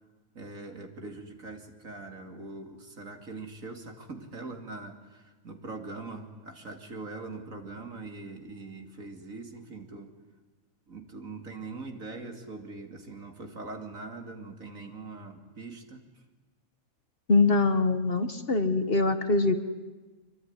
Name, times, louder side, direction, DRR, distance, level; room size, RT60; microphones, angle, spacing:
voice 1, 0.3-10.1 10.9-16.0, right 3 dB, 70° right, 4 dB, 3.2 m, -42 dB
voice 2, 17.3-19.6, left 3 dB, 45° left, 9 dB, 1.5 m, -23 dB
25.0 x 24.0 x 9.9 m, 1.2 s
omnidirectional pair, 1.5 m